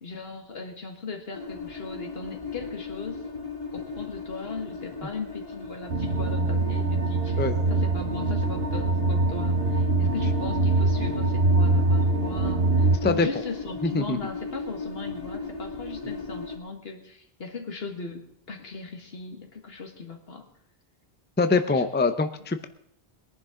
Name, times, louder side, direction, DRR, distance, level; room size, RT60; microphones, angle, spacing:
voice 1, 0.0-3.2 3.7-7.4 7.7-20.4 21.8-21.9, left 4 dB, 75° left, 4 dB, 2.0 m, -38 dB
sound 1, 1.3-16.6, left 4 dB, 35° left, 2.3 m, -37 dB
sound 2, 5.9-13.0, right 2 dB, 80° right, 1.4 m, -23 dB
voice 2, 13.8-14.2 21.4-22.7, left 3 dB, 15° left, 9 dB, 0.5 m, -24 dB
21.0 x 11.0 x 3.8 m, 0.66 s
omnidirectional pair, 1.0 m